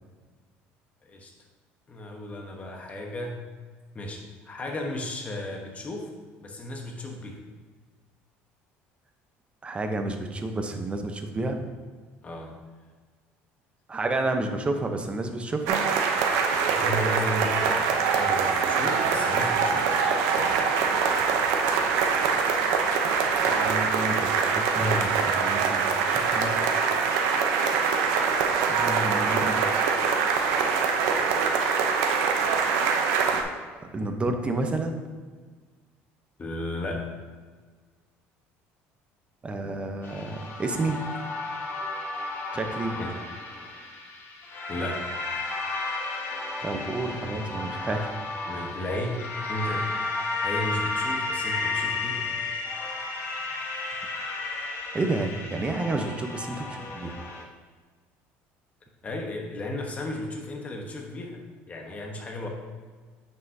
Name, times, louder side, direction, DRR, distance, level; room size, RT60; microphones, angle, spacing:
voice 1, 1.0-1.3 1.9-3.4 3.9-6.1 6.4-7.4 12.2-12.5 16.7-20.1 36.4-37.1 42.9-43.2 44.7-45.1 48.4-49.9 50.4-52.3 59.0-62.5, left 1 dB, 25° left, 1 dB, 1.1 m, -34 dB
voice 2, 9.6-11.7 13.9-15.8 23.3-26.6 28.7-29.6 33.8-35.0 39.4-41.1 42.5-43.0 46.6-48.1 54.9-57.2, right 2 dB, 20° right, 5 dB, 0.8 m, -30 dB
sound 1, 15.7-33.4, right 5 dB, 85° right, 0.7 m, -24 dB
sound 2, 40.0-57.4, left 3 dB, 45° left, 1.3 m, -33 dB
9.1 x 5.6 x 2.8 m, 1.5 s
supercardioid pair, 105°, 5 cm